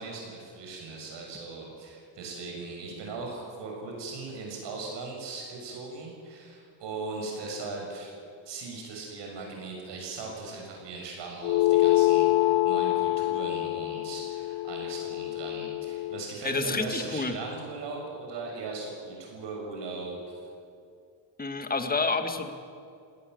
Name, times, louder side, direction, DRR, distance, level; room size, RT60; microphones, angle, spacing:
voice 1, 0.0-8.1 8.4-20.2, right 3 dB, 65° right, 0 dB, 6.8 m, -39 dB
sound 1, 11.4-16.2, left 17 dB, 70° left, 0.7 m, -25 dB
voice 2, 16.4-17.3 21.4-22.5, left 3 dB, 20° left, 7 dB, 1.9 m, -29 dB
19.5 x 18.0 x 7.9 m, 2.4 s
cardioid pair, 110°, 45 cm